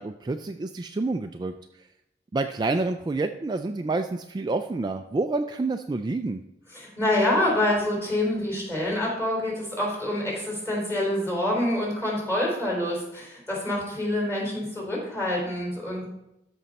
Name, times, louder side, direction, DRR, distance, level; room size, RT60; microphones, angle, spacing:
voice 1, 0.0-1.5 2.3-6.4, right 3 dB, 25° right, 6 dB, 0.3 m, -28 dB
voice 2, 6.7-16.1, left 1 dB, 15° left, -2 dB, 3.7 m, -26 dB
13.5 x 5.4 x 4.1 m, 0.86 s
head